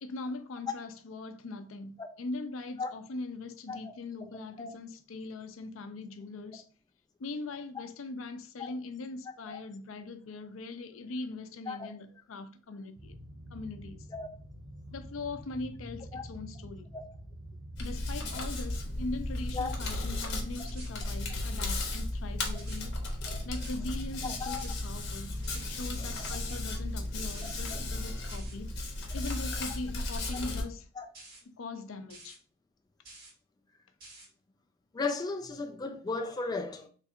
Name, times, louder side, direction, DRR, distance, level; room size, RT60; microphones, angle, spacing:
voice 1, 0.0-6.6 7.2-13.1 13.5-14.1 14.9-16.9 17.8-23.0 23.5-28.7 29.1-30.9 31.6-32.4, left 3 dB, 75° left, 0.5 m, -41 dB
sound 1, 13.0-20.2, equal, 75° right, 0.9 m, -47 dB
Hands, 17.8-30.6, left 2 dB, 55° left, 1.0 m, -35 dB
sound 2, 19.8-20.0 20.7-20.9 21.6-21.9 22.6-22.8 23.5-23.8 24.5-24.7 25.4-25.7 26.4-26.6 27.3-27.6 28.3-28.6 29.2-29.5 30.2-30.5 31.1-31.4 32.1-32.4 33.1-33.3 34.0-34.3, right 2 dB, 50° right, 2.0 m, -50 dB
voice 2, 24.2-24.6 26.0-26.3 31.0-31.1 34.9-36.9, left 4 dB, 20° left, 0.3 m, -35 dB
3.3 x 2.4 x 4.3 m
head